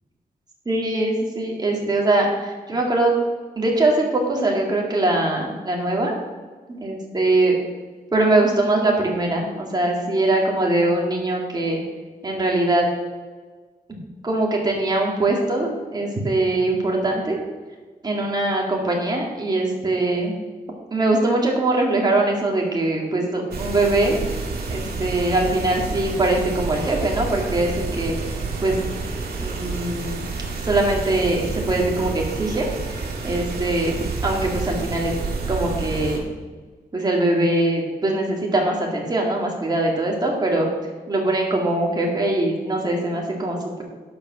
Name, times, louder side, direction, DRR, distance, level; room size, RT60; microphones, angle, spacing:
voice 1, 0.7-3.1 3.6-6.1 6.7-7.6 8.1-11.8 12.2-12.9 14.2-17.4 18.0-20.3 20.9-24.2 24.7-28.2 28.6-28.8 29.4-30.2 30.7-35.2 35.5-36.3 36.9-40.7 41.1-43.8, right 2 dB, 25° right, -1 dB, 2.1 m, -22 dB
sound 1, 23.5-36.2, right 4 dB, 85° right, 2.0 m, -29 dB
11.5 x 5.1 x 6.3 m, 1.4 s
wide cardioid pair, 175°, 16 cm